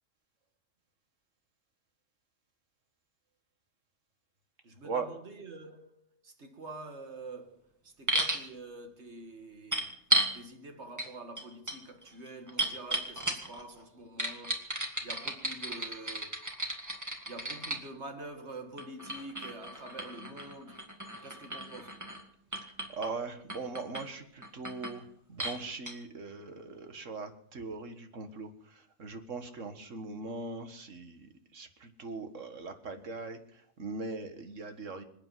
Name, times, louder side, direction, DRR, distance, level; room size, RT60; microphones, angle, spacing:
voice 1, 4.6-9.9 10.3-14.7 15.0-16.4 17.3-20.8 21.2-22.0, right 2 dB, 65° right, 2.0 m, -46 dB
sound 1, 8.1-8.4 9.7-10.3 11.0-11.1 11.4-13.6 14.2-17.8 18.8-22.2 22.5-23.1 23.5-24.0 24.4-25.0 25.4-25.6 25.9-26.0, right 1 dB, 15° right, 1.9 m, -34 dB
voice 2, 22.6-35.0, right 3 dB, 85° right, 2.0 m, -40 dB
26.5 x 8.9 x 5.7 m
omnidirectional pair, 1.3 m